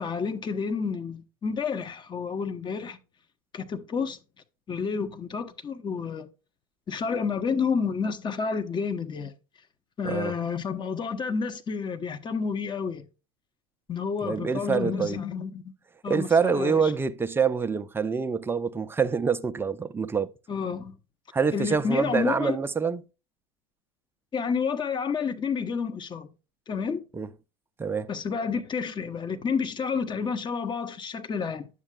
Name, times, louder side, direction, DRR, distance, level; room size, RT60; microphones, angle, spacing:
voice 1, 0.0-3.0 3.5-4.2 4.7-6.3 6.9-9.3 10.0-13.1 13.9-15.6 16.0-16.9 20.5-21.0 21.5-22.6 24.3-26.3 26.7-27.0 28.1-31.7, left 5 dB, 25° left, 0.9 m, -30 dB
voice 2, 10.0-10.3 14.2-15.2 16.1-20.3 21.3-23.0 27.1-27.3 27.8-28.1, right 5 dB, 10° right, 0.5 m, -26 dB
9.8 x 7.2 x 2.3 m
hypercardioid pair, 85°, 18 cm